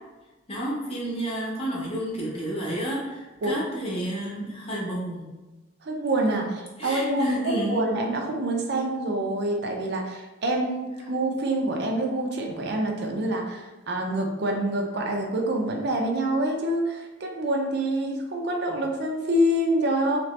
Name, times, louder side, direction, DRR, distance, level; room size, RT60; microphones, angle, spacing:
voice 1, 0.5-5.3 6.8-7.8, right 1 dB, 30° left, -4 dB, 0.8 m, -30 dB
voice 2, 5.8-20.2, right 1 dB, 60° right, 1 dB, 0.5 m, -26 dB
2.9 x 2.8 x 3.2 m, 1.1 s
head